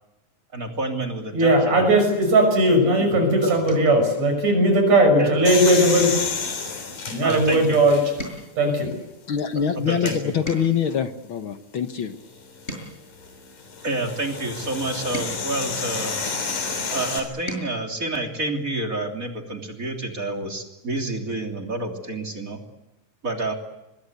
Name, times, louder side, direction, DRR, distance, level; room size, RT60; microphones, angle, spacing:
voice 1, 0.5-1.9 3.1-3.6 5.1-5.3 7.2-7.8 9.7-10.3 13.8-16.1 16.9-22.6 23.2-23.5, right 2 dB, 25° right, 3 dB, 3.2 m, -29 dB
voice 2, 1.3-6.2 7.1-8.1 8.6-9.0, right 1 dB, 60° right, 5 dB, 7.4 m, -18 dB
sound 1, 3.6-4.1 4.6-4.9 5.2-5.4 5.9-7.8 8.0-11.0 11.6-14.1 14.7-16.6 17.1-17.8 19.2-19.3 19.6-19.8, equal, 20° left, 6.7 m, -41 dB
sound 2, 5.5-8.4 8.9-9.0 9.9-10.2 12.3-17.2, left 4 dB, 80° left, 5.2 m, -30 dB
voice 3, 9.3-12.2, left 7 dB, 55° left, 9 dB, 1.5 m, -24 dB
24.5 x 22.0 x 8.1 m, 0.98 s
omnidirectional pair, 3.6 m